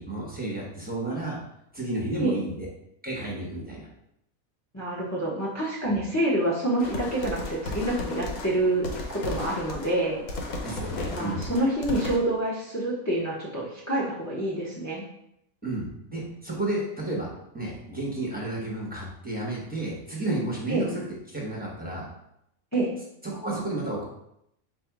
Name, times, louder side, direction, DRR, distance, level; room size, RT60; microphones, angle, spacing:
voice 1, 0.0-1.4 1.7-2.7 3.0-3.9 5.8-6.0 10.6-11.4 15.6-21.0 21.3-22.0 23.2-24.0, right 2 dB, 5° right, -4 dB, 0.9 m, -32 dB
voice 2, 4.7-10.2 11.1-15.0 20.7-20.9 22.7-22.9, right 1 dB, 15° left, -7 dB, 0.6 m, -27 dB
sound 1, 6.8-12.2, left 2 dB, 80° left, 1.3 m, -35 dB
4.3 x 2.6 x 4.6 m, 0.78 s
omnidirectional pair, 1.5 m